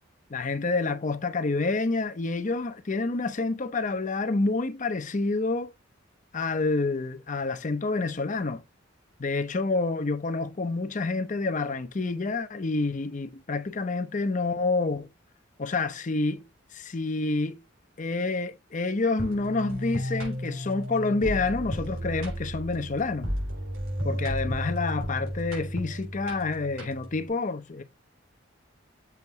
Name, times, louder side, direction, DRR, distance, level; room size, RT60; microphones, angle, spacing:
voice 1, 0.3-5.7 6.3-8.6 9.2-15.1 15.6-16.4 16.7-17.6 18.0-23.3 24.0-27.8, left 3 dB, 40° left, 0.6 m, -28 dB
sound 1, 19.2-27.3, equal, 90° right, 3.8 m, -33 dB
7.0 x 2.9 x 4.6 m
head